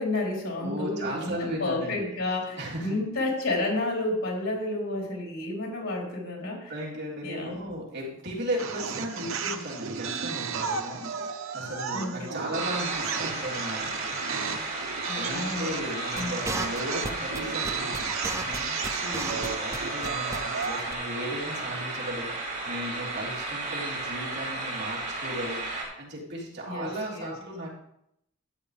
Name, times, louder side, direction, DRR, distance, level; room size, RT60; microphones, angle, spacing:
voice 1, 0.0-6.7 7.2-7.7 11.9-12.3 15.1-15.8 16.1-16.3 26.7-26.9 27.1-27.3, left 2 dB, 90° left, -1 dB, 3.8 m, -31 dB
voice 2, 0.6-2.1 2.6-3.0 6.7-14.0 14.9-27.7, equal, 55° right, -5 dB, 3.4 m, -36 dB
sound 1, 8.6-20.9, right 6 dB, 75° right, 1.0 m, -34 dB
sound 2, 12.6-25.8, right 2 dB, 40° right, 4.6 m, -34 dB
sound 3, 16.2-19.8 20.0-20.4 20.6-20.7 20.9-21.0, right 2 dB, 15° right, 0.7 m, -33 dB
13.0 x 9.3 x 3.4 m, 0.78 s
head